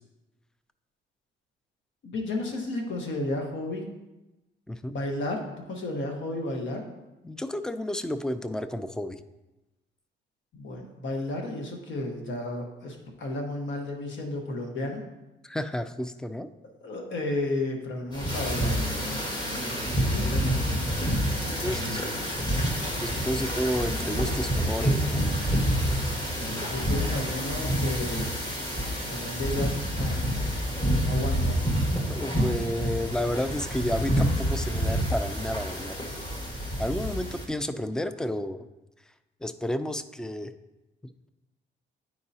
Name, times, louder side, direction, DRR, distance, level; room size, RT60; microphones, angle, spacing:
voice 1, 2.0-3.9 4.9-5.4 5.7-6.8 10.5-15.0 16.8-20.8 21.6-22.3 26.3-28.3 29.1-30.2 31.0-31.6, left 2 dB, 70° left, 2 dB, 1.3 m, -33 dB
voice 2, 7.2-9.2 15.4-16.5 21.6-22.0 23.0-25.2 32.1-35.9 36.8-38.7 39.4-40.5 41.0-41.3, left 1 dB, 5° left, 12 dB, 0.3 m, -31 dB
sound 1, 18.1-37.4, equal, 20° left, 1.6 m, -28 dB
9.6 x 4.7 x 2.8 m, 1.0 s
cardioid pair, 90°, 20 cm